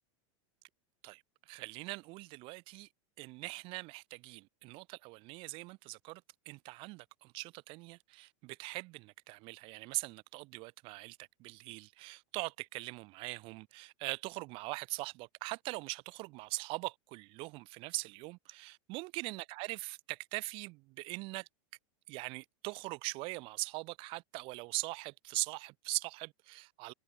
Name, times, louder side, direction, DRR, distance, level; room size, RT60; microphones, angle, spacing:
voice 1, 1.0-2.9 3.2-21.5 22.1-26.9, right 24 dB, 35° right, 0.4 m, -41 dB
supercardioid pair, 150°, 16 cm